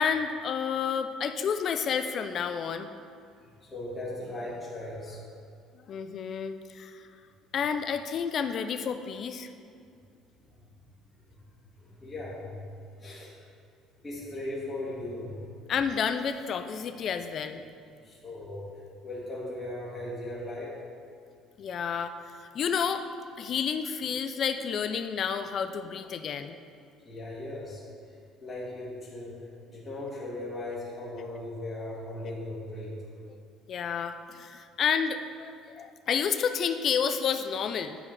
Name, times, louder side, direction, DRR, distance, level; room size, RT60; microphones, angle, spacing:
voice 1, 0.0-2.9 5.9-7.1 7.5-9.5 15.7-17.6 21.6-22.1 22.4-23.0 23.4-26.6 33.7-38.0, left 7 dB, 40° left, 8 dB, 0.3 m, -30 dB
voice 2, 3.4-5.2 10.5-10.6 11.1-11.2 11.8-12.7 12.9-13.5 14.0-15.4 18.0-18.7 19.0-20.7 27.0-29.4 29.7-33.2, left 1 dB, 15° left, -9 dB, 1.7 m, -38 dB
8.9 x 4.8 x 3.2 m, 2.3 s
cardioid pair, 145°, 0 cm